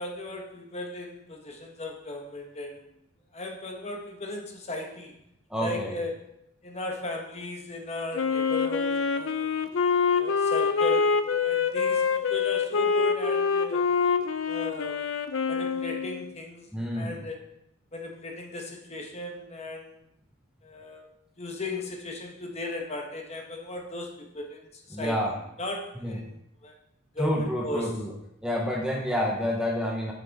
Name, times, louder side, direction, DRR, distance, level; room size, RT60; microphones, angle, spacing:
voice 1, 0.0-2.8 3.3-5.1 5.6-6.3 6.6-9.5 10.1-13.8 14.5-15.0 15.5-16.7 16.9-17.4 17.9-20.0 20.6-21.1 21.4-25.2 25.6-26.4 26.6-26.7 27.1-27.9 28.7-28.8, left 2 dB, 30° left, 2 dB, 1.1 m, -36 dB
voice 2, 5.5-5.9 16.7-17.2 24.9-25.3 26.0-26.2 27.2-28.1 28.4-30.1, left 1 dB, 5° right, -1 dB, 0.8 m, -28 dB
Wind instrument woodwind instrument, 8.1-16.3, left 5 dB, 65° left, 0.5 m, -25 dB
8.0 x 6.1 x 4.0 m, 0.79 s
head